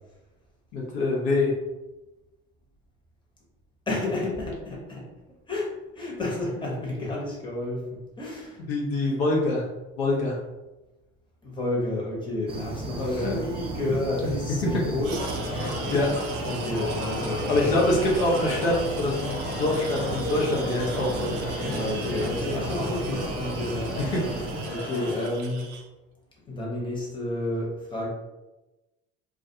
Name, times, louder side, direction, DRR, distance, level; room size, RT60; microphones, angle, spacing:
voice 1, 0.7-1.5 8.7-9.6 10.0-10.4 13.0-13.3 15.6-16.2 17.5-21.8 22.4-22.5 24.1-24.2, left 2 dB, 65° left, -3 dB, 0.8 m, -25 dB
voice 2, 3.9-5.1 5.5-8.6 11.4-15.2 15.5-15.7 16.4-18.0 21.7-24.2 24.7-25.7 26.5-28.1, left 2 dB, 15° left, -4 dB, 1.0 m, -31 dB
sound 1, 12.5-24.7, right 3 dB, 20° right, 0.4 m, -35 dB
sound 2, 15.0-25.8, right 5 dB, 75° right, 0.5 m, -40 dB
sound 3, 15.1-25.3, left 2 dB, 40° left, 1.4 m, -34 dB
2.3 x 2.3 x 2.7 m, 1.1 s
hypercardioid pair, 70°, 32 cm